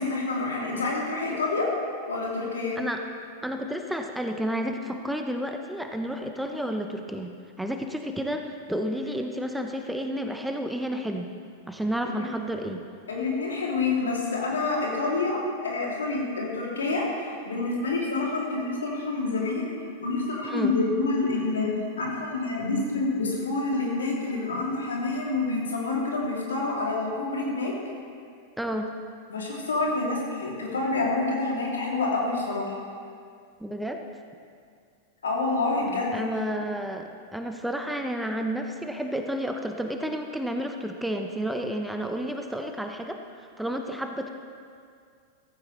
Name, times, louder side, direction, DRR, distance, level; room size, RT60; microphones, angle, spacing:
voice 1, 0.0-1.7 2.1-2.8 12.1-12.2 13.1-19.7 20.0-21.7 22.0-27.7 29.3-32.8 35.2-36.3, left 3 dB, 75° left, -3 dB, 3.0 m, -27 dB
voice 2, 3.4-11.3 11.7-12.8 20.4-20.7 28.6-28.9 33.6-34.0 36.1-44.3, equal, 5° right, 4 dB, 0.8 m, -31 dB
15.5 x 15.0 x 3.3 m, 2.2 s
figure-of-eight pair, 95°, 0 cm